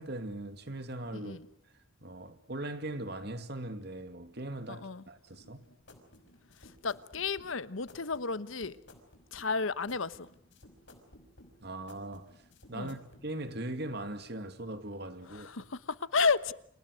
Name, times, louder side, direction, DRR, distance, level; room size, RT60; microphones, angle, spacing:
voice 1, 0.0-1.4 2.0-5.7 11.6-12.3 12.7-15.5, right 1 dB, 55° right, 2.4 m, -40 dB
voice 2, 1.1-1.5 4.7-5.0 6.6-8.8 9.3-10.3 12.7-13.0 15.3-16.5, left 4 dB, 80° left, 1.1 m, -32 dB
sound 1, 5.4-13.2, left 1 dB, 60° left, 5.5 m, -57 dB
30.0 x 27.5 x 6.5 m
head